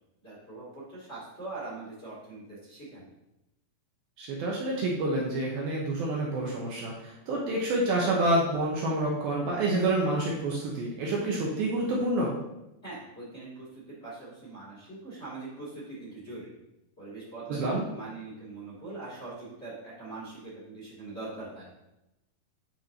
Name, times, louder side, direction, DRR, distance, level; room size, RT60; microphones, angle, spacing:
voice 1, 0.2-3.0 12.8-16.5 17.0-21.7, right 3 dB, 20° left, -9 dB, 2.5 m, -42 dB
voice 2, 4.2-12.4 17.5-17.8, right 2 dB, 70° right, -3 dB, 2.6 m, -28 dB
9.1 x 5.5 x 2.9 m, 0.90 s
omnidirectional pair, 4.9 m